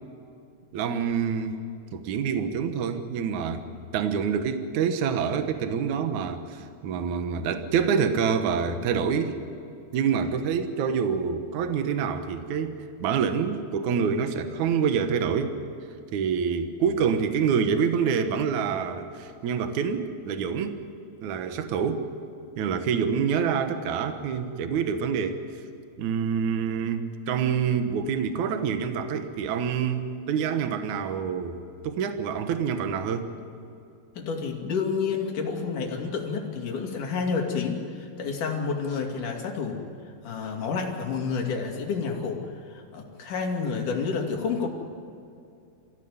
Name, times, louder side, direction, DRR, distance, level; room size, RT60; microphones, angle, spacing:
voice 1, 0.7-1.6 1.9-3.6 3.9-9.4 9.9-12.7 13.0-15.6 16.1-20.8 21.2-22.0 22.6-25.4 26.0-33.3, right 6 dB, 80° right, 7 dB, 1.7 m, -26 dB
voice 2, 34.2-39.8 40.2-44.7, left 5 dB, 50° left, 1 dB, 3.5 m, -29 dB
25.5 x 16.0 x 9.6 m, 2.5 s
omnidirectional pair, 5.5 m